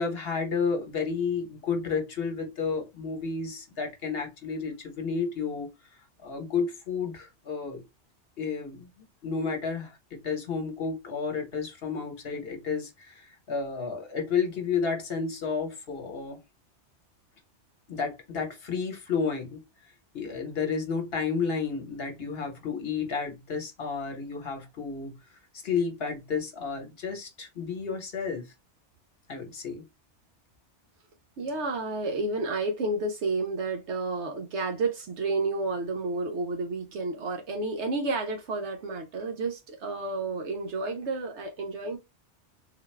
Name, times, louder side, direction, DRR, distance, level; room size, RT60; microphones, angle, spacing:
voice 1, 0.0-5.7 6.2-7.8 8.4-8.9 9.2-16.4 17.9-19.6 20.1-25.1 25.6-28.5 29.3-29.8, left 5 dB, 55° left, 1.3 m, -31 dB
voice 2, 31.4-42.0, right 3 dB, 75° right, 0.9 m, -31 dB
3.9 x 2.2 x 3.2 m
omnidirectional pair, 1.2 m